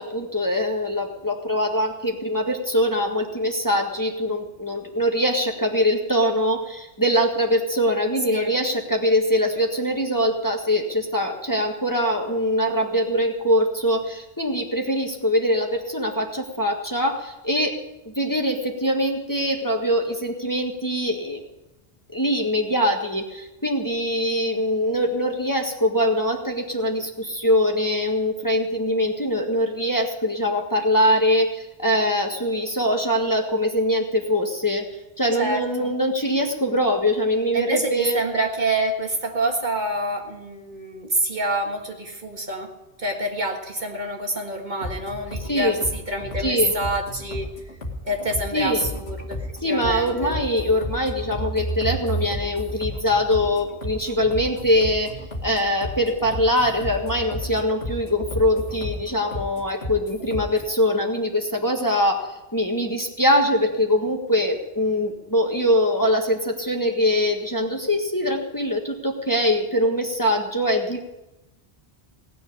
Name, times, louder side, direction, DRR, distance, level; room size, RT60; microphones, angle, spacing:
voice 1, 0.0-21.4 22.1-34.9 35.2-38.2 45.4-45.8 46.4-46.7 48.5-48.9 49.6-55.1 55.4-71.0, equal, 20° left, 1 dB, 1.6 m, -23 dB
voice 2, 35.4-35.9 37.5-47.5 48.0-49.4 49.6-50.3, right 1 dB, 45° right, 2 dB, 1.8 m, -27 dB
sound 1, 44.8-60.8, equal, 75° left, 2.7 m, -33 dB
18.0 x 7.0 x 9.9 m, 0.97 s
omnidirectional pair, 1.1 m